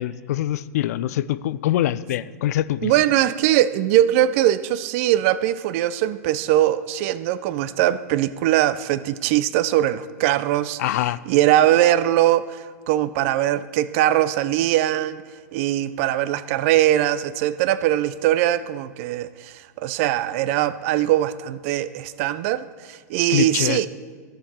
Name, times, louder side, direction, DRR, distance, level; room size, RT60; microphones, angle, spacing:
voice 1, 0.0-2.9 10.8-11.2 23.3-23.8, left 13 dB, 60° left, 17 dB, 0.3 m, -24 dB
voice 2, 2.8-10.8 11.3-15.2 15.5-23.9, right 13 dB, 50° right, 16 dB, 0.4 m, -21 dB
13.5 x 5.2 x 4.3 m, 1.5 s
hypercardioid pair, 115°, 9 cm